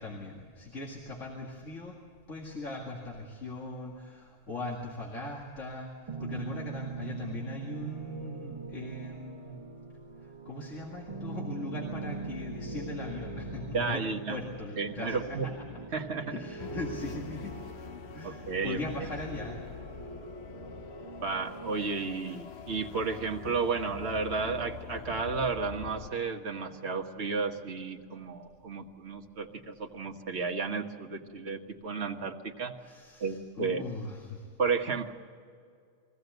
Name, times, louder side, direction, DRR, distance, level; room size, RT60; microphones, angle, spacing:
voice 1, 0.0-2.0 2.3-9.6 10.2-14.0 14.3-15.7 16.3-17.6 18.1-19.7 32.8-34.5, left 2 dB, 90° left, -2 dB, 2.6 m, -39 dB
sound 1, 6.1-21.7, right 4 dB, 30° right, 0.8 m, -42 dB
voice 2, 13.7-14.4 14.8-15.5 15.9-16.3 18.2-18.8 21.2-32.7 33.2-33.8 34.6-35.1, right 4 dB, 65° right, 3 dB, 1.7 m, -32 dB
sound 2, 16.6-26.1, left 8 dB, 65° left, 1.1 m, -44 dB
23.0 x 16.0 x 8.1 m, 2.3 s
omnidirectional pair, 1.3 m